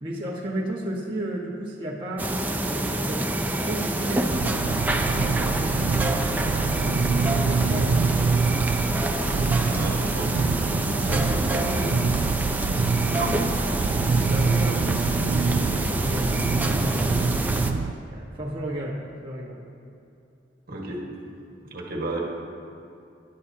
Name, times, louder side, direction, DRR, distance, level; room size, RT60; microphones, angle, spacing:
voice 1, 0.0-2.3 2.6-6.4 6.8-8.5 10.6-12.3 14.2-17.2 18.0-19.6, right 1 dB, 30° right, -6 dB, 1.4 m, -33 dB
sound 1, 2.2-17.7, right 1 dB, 10° right, 0.6 m, -27 dB
sound 2, 4.2-17.9, right 5 dB, 90° right, 0.3 m, -26 dB
voice 2, 9.7-10.7 13.1-13.5 20.7-21.0 21.6-22.2, right 2 dB, 55° right, -2 dB, 1.7 m, -33 dB
16.5 x 11.5 x 2.8 m, 2.6 s
head